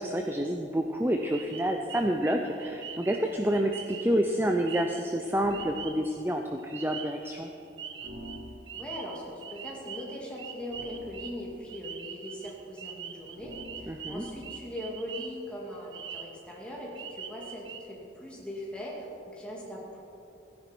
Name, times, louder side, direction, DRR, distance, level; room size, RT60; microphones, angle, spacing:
voice 1, 0.0-7.5 13.9-14.2, equal, 10° right, 3 dB, 0.5 m, -28 dB
sound 1, 1.3-6.2 6.7-7.5 7.8-15.5 15.8-16.6 16.9-17.8, right 8 dB, 85° right, 0.9 m, -43 dB
sound 2, 5.3-5.8 8.0-9.0 10.7-11.8 13.3-14.7, equal, 65° right, 1.8 m, -46 dB
voice 2, 8.7-20.0, left 1 dB, 5° left, -5 dB, 2.4 m, -40 dB
16.0 x 10.0 x 4.5 m, 2.9 s
head